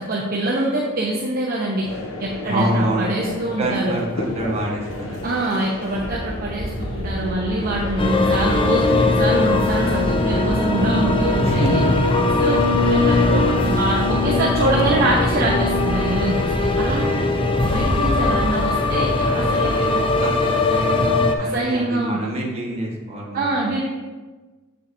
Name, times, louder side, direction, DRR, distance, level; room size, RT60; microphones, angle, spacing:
voice 1, 0.0-1.8 2.2-3.9 5.2-11.8 12.4-12.6 12.8-17.3 17.7-19.9 21.4-22.2 23.3-23.8, right 2 dB, 45° right, -4 dB, 0.8 m, -24 dB
sound 1, 1.8-21.2, left 2 dB, 80° left, 0.9 m, -34 dB
voice 2, 2.4-3.1 3.6-5.2 11.4-11.9 12.1-12.9 19.2-23.6, right 1 dB, 30° right, -3 dB, 1.4 m, -26 dB
sound 2, 5.9-16.9, equal, 10° right, 0.9 m, -31 dB
sound 3, 8.0-21.3, left 2 dB, 25° left, 0.5 m, -20 dB
7.5 x 6.9 x 2.7 m, 1.3 s
head